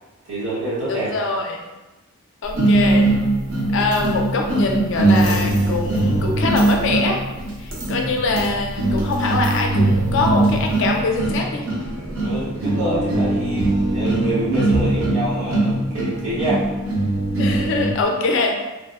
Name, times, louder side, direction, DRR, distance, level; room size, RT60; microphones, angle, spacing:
voice 1, 0.3-1.1 7.8-8.1 12.0-16.7, right 1 dB, 80° right, -9 dB, 1.2 m, -26 dB
voice 2, 0.9-1.7 2.4-3.1 3.7-7.2 7.6-11.7 17.4-18.7, left 3 dB, 55° left, 1 dB, 0.4 m, -23 dB
sound 1, 2.5-18.0, right 2 dB, 60° right, 0.6 m, -21 dB
3.2 x 2.1 x 2.3 m, 1.1 s
head